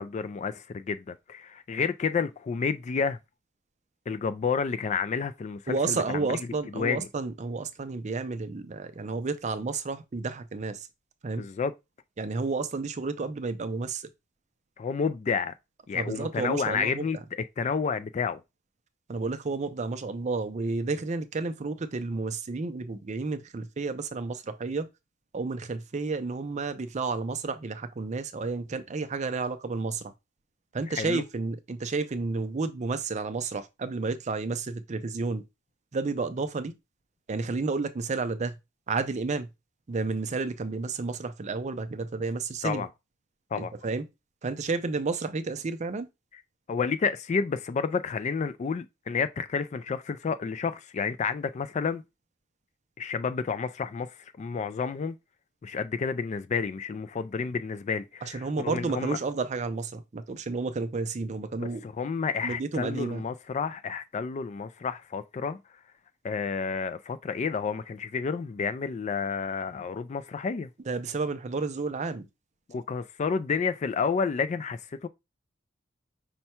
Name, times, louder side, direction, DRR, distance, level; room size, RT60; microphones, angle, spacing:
voice 1, 0.0-3.2 4.1-6.4 6.7-7.1 11.4-11.7 14.8-15.5 15.9-17.2 17.6-18.4 31.0-31.2 42.6-42.9 43.5-43.7 46.7-52.0 53.0-54.1 54.4-55.1 55.6-59.2 61.6-65.6 66.2-70.7 72.7-75.1, left 5 dB, 35° left, 0.3 m, -30 dB
voice 2, 5.7-10.9 11.2-11.4 12.2-14.0 15.9-17.1 19.1-24.9 25.3-30.1 30.7-35.4 35.9-36.7 37.3-38.6 38.9-39.5 39.9-42.8 43.6-44.0 44.4-46.1 58.2-61.8 62.4-63.2 70.9-72.3, right 3 dB, 35° right, 0.5 m, -31 dB
5.5 x 2.2 x 4.2 m
head